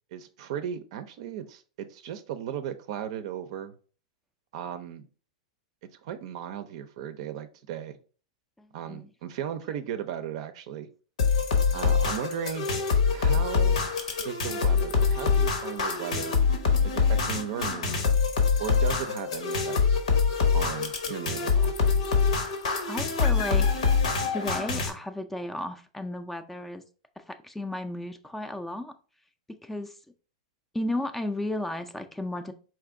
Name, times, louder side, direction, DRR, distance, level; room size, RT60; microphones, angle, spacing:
voice 1, 0.1-3.7 4.5-5.0 6.0-8.0 8.7-10.9 11.7-12.7 13.1-13.8 14.2-16.4 16.8-18.0 18.6-20.0 20.5-21.8, right 9 dB, 60° right, 10 dB, 0.5 m, -36 dB
voice 2, 8.6-9.1 12.1-12.2 22.9-23.8 24.3-26.8 27.2-28.9 29.6-30.0 30.7-32.5, left 1 dB, 5° left, 9 dB, 0.3 m, -34 dB
sound 1, 11.2-24.9, left 5 dB, 80° left, 1.0 m, -25 dB
4.4 x 2.5 x 3.6 m, 0.39 s
hypercardioid pair, 120°, 3 cm